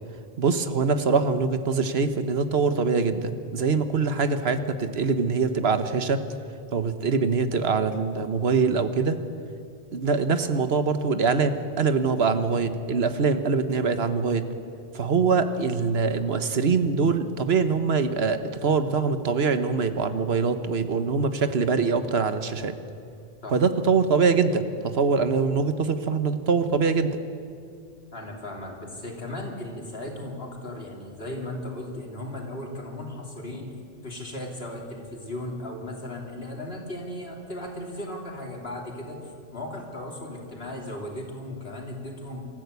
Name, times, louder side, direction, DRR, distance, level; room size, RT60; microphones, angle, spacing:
voice 1, 0.4-6.2 6.7-9.2 9.9-14.5 14.9-22.7 23.5-27.2, right 5 dB, 90° right, 10 dB, 1.4 m, -23 dB
voice 2, 28.1-33.7 34.0-42.4, left 1 dB, 75° left, 0 dB, 3.5 m, -36 dB
25.5 x 14.0 x 8.2 m, 2.5 s
omnidirectional pair, 1.0 m